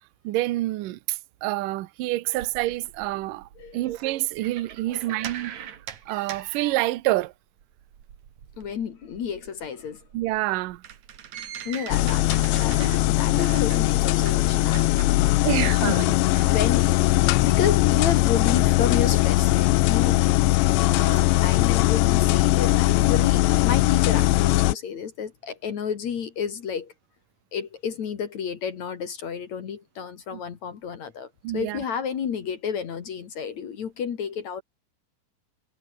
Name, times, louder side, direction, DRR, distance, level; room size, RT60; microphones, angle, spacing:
voice 1, 0.2-5.7 6.1-7.3 10.1-10.8 15.4-16.5 30.3-30.4 31.4-31.8, right 17 dB, 75° right, 2.1 m, -27 dB
sound 1, 2.4-7.3 7.6-15.1, right 9 dB, 50° right, 2.6 m, -42 dB
voice 2, 4.9-5.3 8.6-10.0 11.6-12.3 12.6-15.5 15.8-16.2 16.5-17.0 17.4-20.2 20.6-26.9 27.5-34.6, left 7 dB, 50° left, 2.6 m, -31 dB
sound 2, 11.9-24.8, left 18 dB, 85° left, 3.1 m, -20 dB
omnidirectional pair, 5.0 m